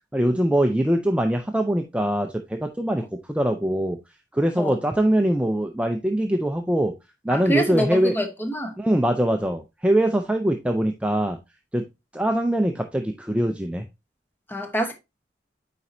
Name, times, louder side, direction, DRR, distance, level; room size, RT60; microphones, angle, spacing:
voice 1, 0.1-4.0 4.3-6.9 7.2-8.2 8.8-11.4 11.7-11.9 12.1-13.8, right 1 dB, 5° right, 0.5 m, -23 dB
voice 2, 7.3-8.7 14.5-14.9, equal, 10° left, 1.0 m, -26 dB
9.2 x 4.2 x 2.6 m
head